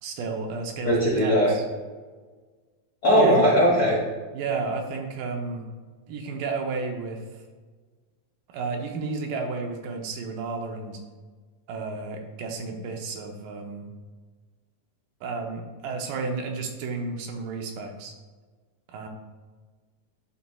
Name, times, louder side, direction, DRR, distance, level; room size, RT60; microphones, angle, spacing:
voice 1, 0.0-1.6 3.1-3.5 4.3-5.7 6.1-7.2 8.5-11.0 11.7-13.9 15.2-18.1 18.9-19.1, right 4 dB, 85° right, 3 dB, 2.4 m, -32 dB
voice 2, 0.8-1.5 3.0-4.0, equal, 40° left, -7 dB, 1.4 m, -19 dB
11.0 x 4.1 x 2.3 m, 1.4 s
omnidirectional pair, 3.6 m